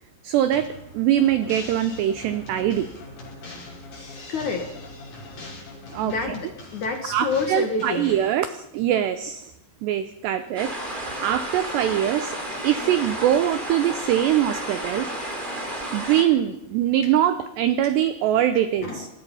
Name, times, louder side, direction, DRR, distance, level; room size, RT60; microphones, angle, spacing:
voice 1, 0.2-0.7 0.9-2.9 5.9-6.1 7.1-9.5 9.8-10.7 11.2-12.4 12.6-15.1 15.9-19.1, right 11 dB, 85° right, 11 dB, 2.4 m, -22 dB
sound 1, 0.5-8.3, left 1 dB, 35° left, 6.1 m, -43 dB
sound 2, 1.2-6.9, left 3 dB, 85° left, 5.9 m, -44 dB
voice 2, 4.3-4.7 6.0-8.2 17.0-17.1 17.8-18.0 18.5-19.1, left 4 dB, 70° left, 4 dB, 1.8 m, -29 dB
sound 3, 10.6-16.2, right 1 dB, 10° right, 2.7 m, -32 dB
24.5 x 19.0 x 5.6 m, 0.88 s
omnidirectional pair, 6.0 m